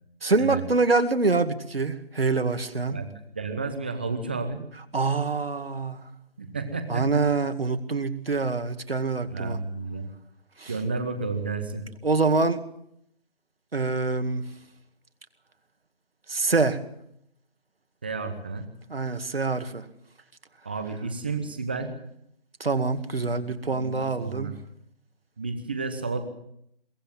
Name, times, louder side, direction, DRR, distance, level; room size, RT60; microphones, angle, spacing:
voice 1, 0.2-3.0 4.9-6.1 6.9-9.6 10.6-10.7 12.0-12.6 13.7-14.4 16.3-16.8 18.9-19.9 22.6-24.5, right 3 dB, 70° right, 2.3 m, -25 dB
voice 2, 2.9-4.6 6.4-7.2 9.3-10.1 10.7-11.9 18.0-18.7 20.6-21.9 23.3-24.6 25.4-26.2, right 4 dB, 10° right, 0.9 m, -32 dB
23.0 x 17.0 x 7.5 m
figure-of-eight pair, 165°, 31 cm